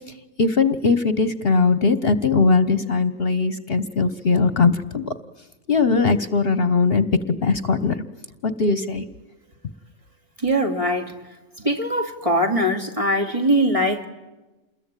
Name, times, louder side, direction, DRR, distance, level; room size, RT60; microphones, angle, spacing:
voice 1, 0.4-5.1 5.7-8.0 8.4-9.1, left 4 dB, 50° left, 13 dB, 1.3 m, -20 dB
voice 2, 10.4-11.1 11.6-14.1, equal, 25° right, 4 dB, 2.8 m, -21 dB
28.5 x 21.5 x 9.1 m, 1.1 s
omnidirectional pair, 1.3 m